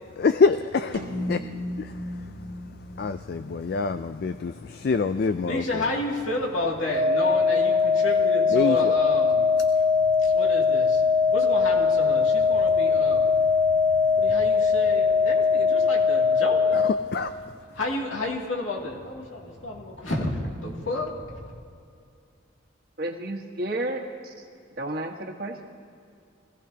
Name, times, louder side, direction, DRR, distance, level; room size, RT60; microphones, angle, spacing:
voice 1, 0.2-1.0 1.3-1.4 3.0-5.9 8.5-8.9 16.7-16.8 17.1-17.3, left 4 dB, 50° left, 10 dB, 0.3 m, -25 dB
sound 1, 0.9-5.4, left 1 dB, 80° right, 2.0 m, -37 dB
voice 2, 5.4-9.6 10.2-11.0 11.3-13.4 13.8-16.9 17.7-21.5, left 2 dB, 75° left, -2 dB, 2.5 m, -31 dB
sound 2, 6.9-16.9, left 5 dB, 25° right, 0.4 m, -21 dB
voice 3, 23.0-24.4 24.8-25.6, right 1 dB, 50° right, 2 dB, 1.4 m, -32 dB
24.5 x 16.0 x 2.9 m, 2.4 s
head